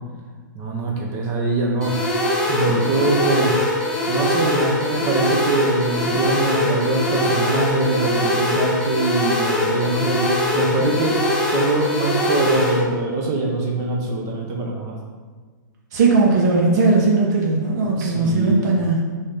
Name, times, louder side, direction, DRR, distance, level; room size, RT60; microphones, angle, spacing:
voice 1, 0.5-3.6 4.1-11.2 11.4-15.0 17.8-18.6, right 2 dB, 30° right, 0 dB, 0.7 m, -23 dB
sound 1, 1.8-12.8, left 1 dB, 5° left, 0.8 m, -22 dB
voice 2, 15.9-19.0, right 3 dB, 55° right, -3 dB, 1.0 m, -18 dB
5.3 x 2.7 x 3.4 m, 1.5 s
hypercardioid pair, 140°, 11 cm